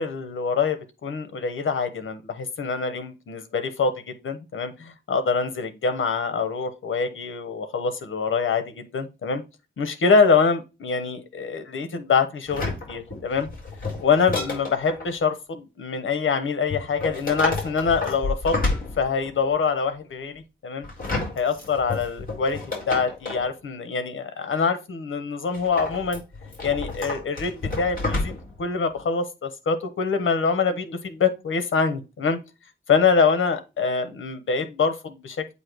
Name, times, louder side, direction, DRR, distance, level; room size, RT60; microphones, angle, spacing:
voice 1, 0.0-9.4 9.8-13.5 14.0-18.6 19.0-20.9 21.3-22.6 22.9-26.2 26.6-32.4 32.9-35.5, left 5 dB, 90° left, 10 dB, 1.1 m, -25 dB
sound 1, 12.5-15.1 16.7-19.4 20.8-23.5 25.5-28.6 29.0-29.1, left 3 dB, 45° left, 3.9 m, -30 dB
8.3 x 2.9 x 4.6 m, 0.27 s
wide cardioid pair, 90°, 20 cm